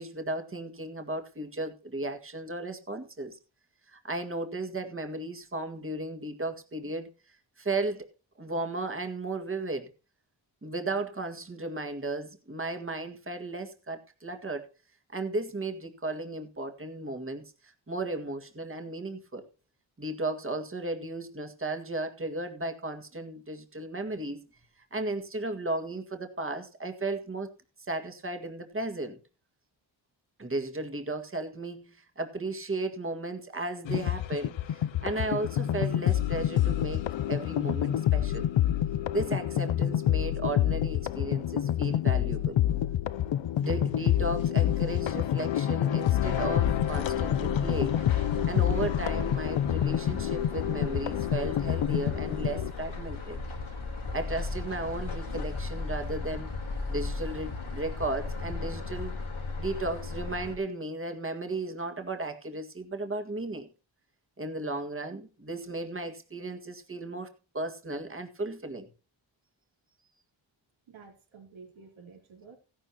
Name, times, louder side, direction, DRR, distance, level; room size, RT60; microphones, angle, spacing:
voice 1, 0.0-3.4 3.9-7.1 7.6-8.1 8.4-9.9 10.6-14.7 15.1-19.4 20.0-24.5 24.9-27.5 27.9-29.2 30.4-38.5 39.1-42.6 43.6-48.0 48.4-53.4 54.1-56.5 56.9-59.2 59.6-63.7 64.4-67.3 67.5-68.9, right 2 dB, 25° right, 6 dB, 1.9 m, -35 dB
sound 1, 33.9-52.7, left 11 dB, 70° left, 0.6 m, -27 dB
sound 2, 46.2-60.6, left 3 dB, 85° left, 3.7 m, -36 dB
voice 2, 70.9-72.6, right 5 dB, 80° right, 1 dB, 4.2 m, -51 dB
16.0 x 11.0 x 2.9 m, 0.32 s
wide cardioid pair, 105°, 47 cm